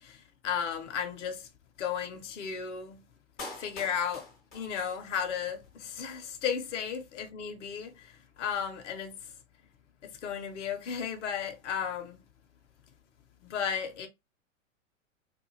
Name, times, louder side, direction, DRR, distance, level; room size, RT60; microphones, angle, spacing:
voice 1, 0.0-1.5 1.8-3.0 3.5-4.3 4.5-9.2 10.0-12.2 13.4-14.1, left 7 dB, 60° left, 0.7 m, -34 dB
Clapping, 3.4-5.4 5.6-5.7, left 2 dB, 10° left, 0.3 m, -45 dB
2.3 x 2.2 x 2.8 m
figure-of-eight pair, 105°, 41 cm